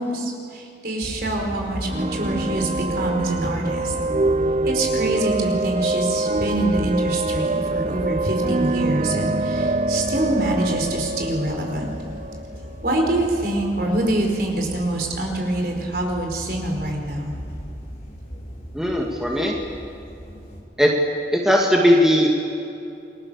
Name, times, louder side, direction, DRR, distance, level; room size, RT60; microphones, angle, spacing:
voice 1, 0.0-3.9 4.6-11.8 12.8-17.4, right 1 dB, 55° right, 1 dB, 4.8 m, -25 dB
sound 1, 1.0-20.6, equal, 50° left, 5.1 m, -37 dB
sound 2, 1.9-13.5, right 2 dB, 35° right, 0.6 m, -25 dB
voice 2, 18.7-19.6 20.8-20.9 21.3-22.3, equal, 5° right, -2 dB, 2.2 m, -18 dB
29.5 x 22.5 x 7.0 m, 2.6 s
head